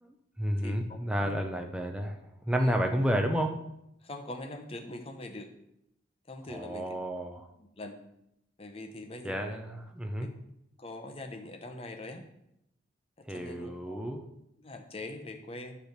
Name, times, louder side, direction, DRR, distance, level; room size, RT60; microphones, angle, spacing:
voice 1, 0.0-2.2 2.5-3.5 6.5-7.5 9.2-10.3 13.3-14.2, equal, 5° right, 3 dB, 0.6 m, -31 dB
voice 2, 4.0-5.5 6.3-7.0 7.6-8.0 8.6-9.6 10.2-10.3 10.8-12.2 13.3-14.0 14.6-15.7, left 2 dB, 30° left, 4 dB, 0.8 m, -42 dB
9.1 x 3.3 x 6.6 m, 0.80 s
head